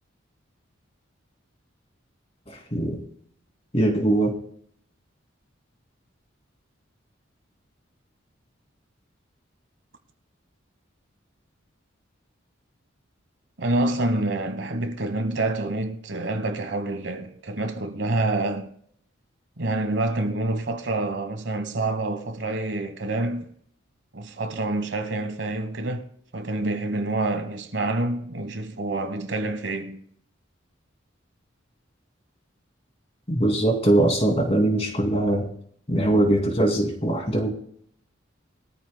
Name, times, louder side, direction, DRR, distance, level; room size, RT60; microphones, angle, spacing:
voice 1, 2.5-3.0 3.7-4.3 33.3-35.5 35.9-37.5, right 1 dB, 30° left, 2.5 m, -21 dB
voice 2, 13.6-18.7 19.6-23.5 24.1-26.1 26.3-30.0, right 2 dB, 60° right, 1.2 m, -27 dB
21.5 x 13.5 x 2.2 m
head